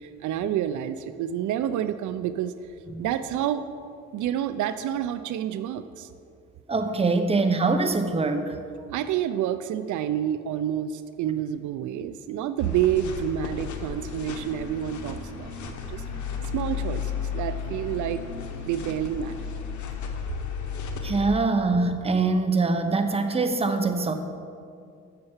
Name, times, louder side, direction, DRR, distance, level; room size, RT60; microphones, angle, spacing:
voice 1, 0.0-2.5 3.0-3.7 4.1-6.1 8.9-16.0 16.5-18.2 18.6-19.5, right 10 dB, 75° right, 12 dB, 0.4 m, -28 dB
voice 2, 6.7-8.6 21.0-24.1, right 3 dB, 20° right, 6 dB, 0.8 m, -23 dB
sound 1, 12.6-21.3, left 6 dB, 75° left, 1.0 m, -34 dB
6.7 x 6.7 x 7.1 m, 2.4 s
cardioid pair, 90°, 30 cm